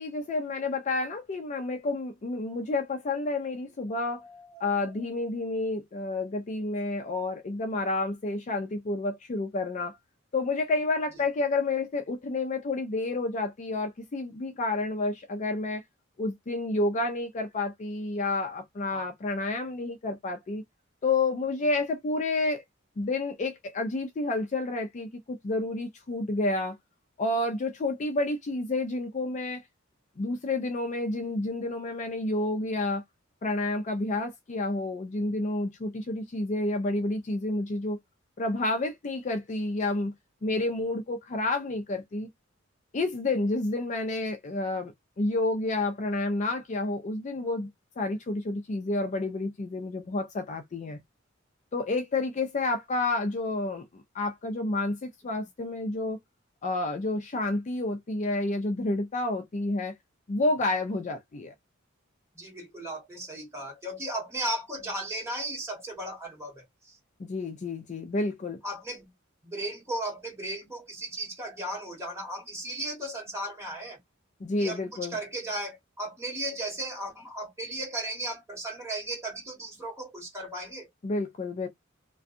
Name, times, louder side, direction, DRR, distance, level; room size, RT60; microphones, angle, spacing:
voice 1, 0.0-4.2 4.6-10.0 10.3-15.8 16.2-20.6 21.0-22.6 23.0-26.8 27.2-29.6 30.2-33.0 33.4-38.0 38.4-40.1 40.4-42.3 42.9-47.7 48.0-51.0 51.7-56.2 56.6-59.9 60.3-61.5 67.2-68.6 74.4-75.2 81.0-81.7, left 2 dB, 35° left, 0.4 m, -30 dB
voice 2, 4.2-4.6 18.9-19.1 62.3-67.0 68.6-69.1 69.4-74.0 74.6-80.9, right 1 dB, 15° right, 1.5 m, -36 dB
2.5 x 2.2 x 2.5 m
head